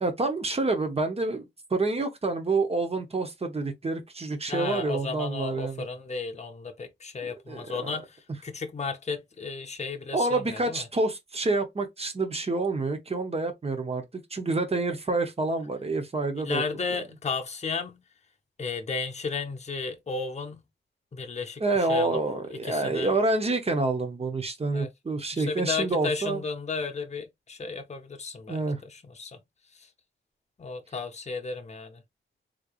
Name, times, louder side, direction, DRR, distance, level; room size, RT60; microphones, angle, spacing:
voice 1, 0.0-5.8 7.2-7.9 10.1-14.0 14.3-16.6 21.6-26.4 28.5-28.8, right 3 dB, 30° right, 0.8 m, -28 dB
voice 2, 4.5-10.9 16.3-18.0 18.6-20.7 21.1-22.2 22.5-23.1 24.7-24.9 25.3-29.4 29.8-29.9 30.6-32.0, left 4 dB, 35° left, 0.7 m, -34 dB
3.7 x 3.2 x 2.4 m
wide cardioid pair, 145°, 20 cm